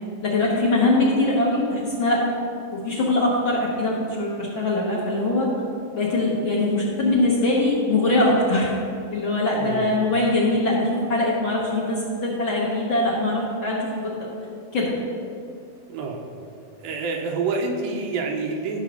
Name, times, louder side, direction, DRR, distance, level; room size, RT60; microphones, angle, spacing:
voice 1, 0.2-2.3 2.7-5.5 5.9-8.7 9.1-14.1 14.7-14.9, left 2 dB, 75° left, -5 dB, 1.1 m, -22 dB
voice 2, 9.5-10.1 15.9-16.2 16.8-18.8, right 4 dB, 75° right, 1 dB, 2.7 m, -28 dB
13.0 x 5.9 x 5.4 m, 2.5 s
omnidirectional pair, 4.2 m